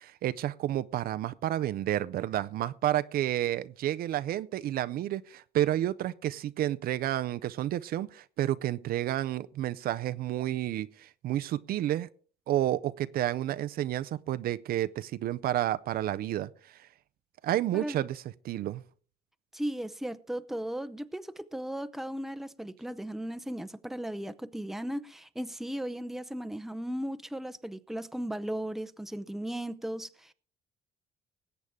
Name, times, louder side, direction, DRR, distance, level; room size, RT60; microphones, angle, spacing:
voice 1, 0.0-12.1 12.5-16.9 17.4-18.8, right 13 dB, 60° right, 0.5 m, -30 dB
voice 2, 19.5-30.3, right 1 dB, ahead, 0.6 m, -36 dB
20.0 x 8.2 x 3.6 m
cardioid pair, 110°, 17 cm